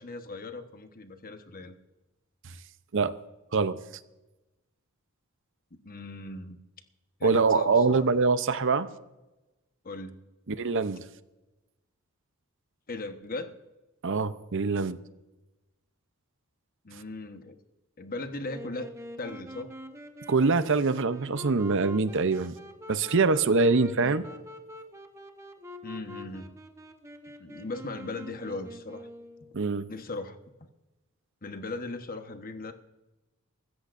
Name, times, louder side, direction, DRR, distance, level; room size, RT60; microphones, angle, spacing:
voice 1, 0.0-1.8 5.8-6.6 7.2-8.1 9.8-10.2 12.9-13.6 16.8-17.6 18.0-18.9 19.2-19.7 23.9-24.3 25.8-26.5 27.4-29.1 29.9-30.4 31.4-32.7, left 3 dB, 45° left, 7 dB, 1.2 m, -38 dB
voice 2, 7.2-8.9 10.5-11.0 14.0-15.0 20.3-22.5 22.9-24.2 29.5-29.9, right 4 dB, 60° right, 13 dB, 0.7 m, -24 dB
Wind instrument woodwind instrument, 18.5-29.6, left 1 dB, 15° right, 1.1 m, -45 dB
24.5 x 13.5 x 2.6 m, 1.0 s
head